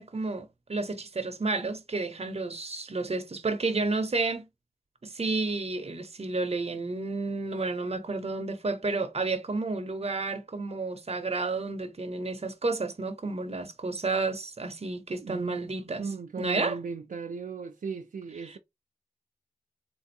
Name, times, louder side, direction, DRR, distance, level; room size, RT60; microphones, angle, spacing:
voice 1, 0.0-4.4 5.0-16.0 16.4-16.8 18.4-18.6, right 3 dB, 45° right, 0.8 m, -31 dB
voice 2, 15.2-18.6, right 5 dB, 70° right, 0.5 m, -38 dB
3.7 x 2.6 x 2.7 m
wide cardioid pair, 65°, 14 cm